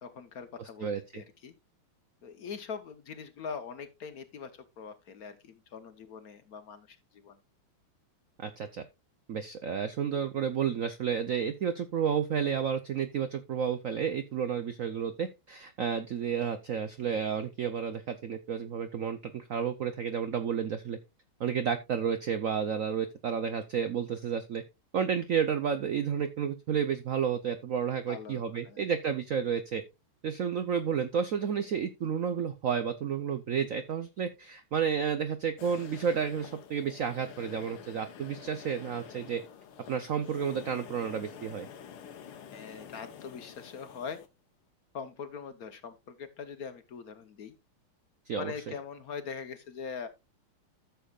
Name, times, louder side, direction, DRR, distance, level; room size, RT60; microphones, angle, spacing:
voice 1, 0.0-1.5 2.2-7.4 28.1-28.9 42.5-44.2 44.9-47.5 48.3-50.1, left 6 dB, 55° left, 1.1 m, -42 dB
voice 2, 0.6-1.2 8.4-8.9 9.3-21.0 21.4-24.6 24.9-29.8 30.2-39.4 39.9-41.7 48.3-48.7, right 7 dB, 80° right, 0.7 m, -31 dB
sound 1, 35.6-44.3, left 8 dB, 90° left, 1.8 m, -48 dB
14.0 x 6.9 x 2.4 m
omnidirectional pair, 2.3 m